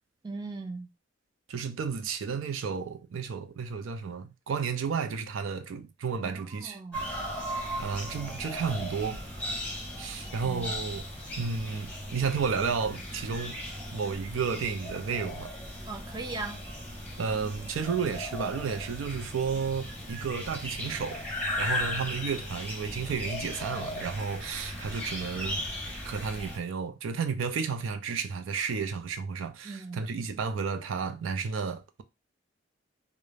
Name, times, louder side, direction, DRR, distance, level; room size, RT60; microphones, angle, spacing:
voice 1, 0.2-0.9 6.2-7.0 10.4-10.7 15.9-16.6 29.6-30.0, right 3 dB, 20° right, 0.4 m, -39 dB
voice 2, 1.5-6.8 7.5-9.2 10.0-11.1 11.4-13.6 13.9-15.5 17.2-21.2 21.6-25.6 26.0-32.0, right 5 dB, 90° right, 0.4 m, -32 dB
sound 1, 6.9-26.6, left 1 dB, 10° left, 0.7 m, -37 dB
2.4 x 2.0 x 3.1 m
head